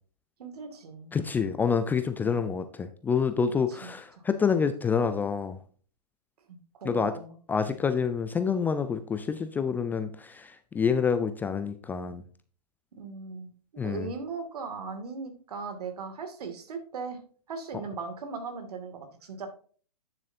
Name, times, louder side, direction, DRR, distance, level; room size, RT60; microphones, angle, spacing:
voice 1, 0.4-1.1 3.7-3.9 6.5-7.4 12.9-13.5 13.8-17.2 17.5-19.5, right 4 dB, 65° right, 6 dB, 2.4 m, -38 dB
voice 2, 1.1-5.6 6.8-7.1 7.5-12.2 13.8-14.1, left 6 dB, 10° left, 10 dB, 0.4 m, -27 dB
9.4 x 7.3 x 2.8 m, 0.42 s
hypercardioid pair, 130°, 21 cm